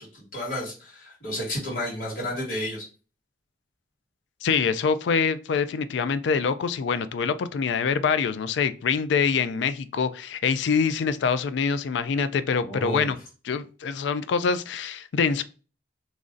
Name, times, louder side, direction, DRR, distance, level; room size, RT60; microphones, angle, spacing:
voice 1, 0.0-2.8 12.6-13.1, left 1 dB, 50° left, 1.9 m, -32 dB
voice 2, 4.4-13.2 13.5-15.4, left 5 dB, 75° left, 0.3 m, -25 dB
3.1 x 2.5 x 3.7 m
head